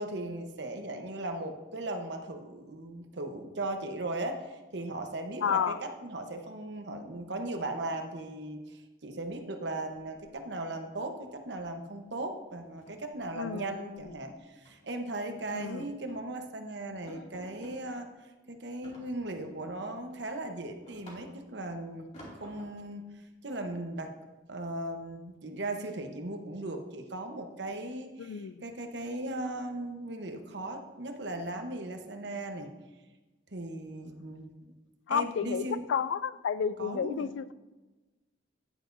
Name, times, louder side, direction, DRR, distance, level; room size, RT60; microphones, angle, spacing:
voice 1, 0.0-18.1 18.5-22.1 22.3-24.1 24.5-32.7 33.5-34.5 35.1-35.8 36.8-37.3, right 2 dB, 65° right, 5 dB, 0.9 m, -38 dB
voice 2, 5.4-5.8 13.3-14.1 15.5-15.9 28.2-28.6 35.1-37.5, left 7 dB, 75° left, 17 dB, 0.3 m, -31 dB
sound 1, 9.9-10.7 11.0-11.2 11.6-11.8 12.1-12.2 12.6-14.1 14.6-14.9 15.4-16.3 16.6-16.7 17.1-17.8 18.8-19.6 20.0-21.6 22.1-22.9, equal, 35° left, 2.3 m, -53 dB
10.0 x 9.8 x 2.6 m, 1.2 s
head